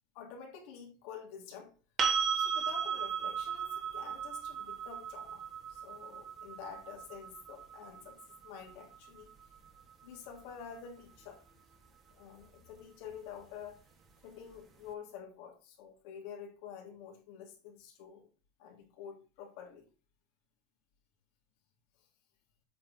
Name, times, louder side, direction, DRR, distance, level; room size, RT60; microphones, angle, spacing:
voice 1, 0.1-1.7 2.4-5.4 5.7-9.3 10.0-11.4 12.1-13.8 14.2-18.3 18.6-19.9, left 7 dB, 65° left, 3.0 m, -48 dB
sound 1, 2.0-9.8 12.6-12.7, right 7 dB, 25° right, 2.0 m, -36 dB
8.4 x 5.6 x 4.3 m
supercardioid pair, 145°, 0 cm